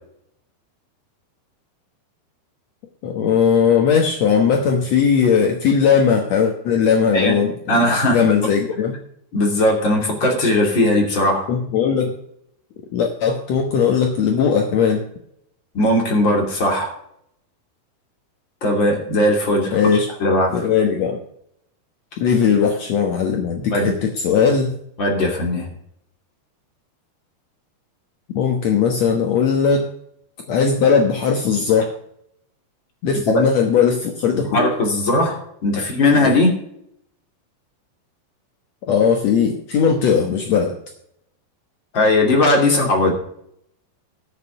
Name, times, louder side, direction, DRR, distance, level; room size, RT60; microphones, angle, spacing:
voice 1, 3.0-7.8 8.1-9.0 11.5-12.1 12.9-15.0 19.7-20.1 20.5-21.2 22.2-24.8 28.3-29.9 30.5-31.9 33.0-34.7 36.2-36.4 38.8-40.8, left 6 dB, 70° left, 3 dB, 1.6 m, -18 dB
voice 2, 7.7-8.3 9.3-11.5 15.7-16.9 18.6-19.8 20.2-20.7 23.7-23.9 25.0-25.7 33.3-33.4 34.3-36.5 41.9-43.1, left 1 dB, 30° left, 1 dB, 3.0 m, -18 dB
12.5 x 6.7 x 6.7 m, 0.71 s
omnidirectional pair, 4.7 m